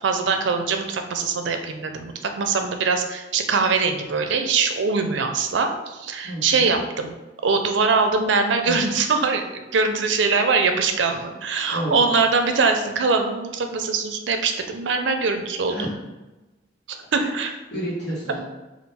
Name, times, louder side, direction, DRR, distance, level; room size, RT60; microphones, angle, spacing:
voice 1, 0.0-7.1 7.4-15.7 16.9-17.5, right 4 dB, 85° right, 6 dB, 0.5 m, -22 dB
voice 2, 6.2-6.7 8.6-9.0 11.6-12.0 15.7-15.9 17.2-17.3 17.7-18.4, equal, 70° left, -6 dB, 1.1 m, -30 dB
3.7 x 2.4 x 4.1 m, 1.1 s
head